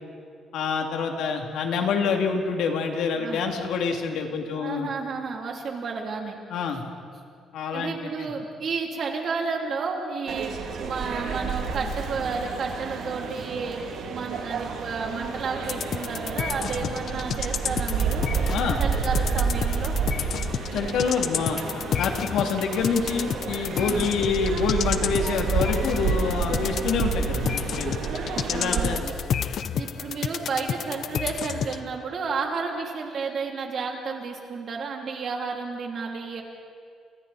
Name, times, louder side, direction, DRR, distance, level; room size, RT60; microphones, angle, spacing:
voice 1, 0.5-4.9 6.5-6.8 7.5-7.9 8.2-8.3 16.8-16.9 18.5-18.8 20.7-28.0 28.5-29.0, left 5 dB, 85° left, 2 dB, 2.8 m, -27 dB
voice 2, 4.6-6.4 7.6-13.8 14.1-19.9 23.8-24.1 28.5-29.1 29.7-36.4, right 5 dB, 45° right, 1 dB, 3.1 m, -32 dB
sound 1, 10.3-29.0, right 5 dB, 65° right, 2.8 m, -30 dB
sound 2, 15.6-31.8, left 8 dB, 50° left, 0.7 m, -31 dB
29.0 x 29.0 x 4.3 m, 2.3 s
cardioid pair, 170°, 0 cm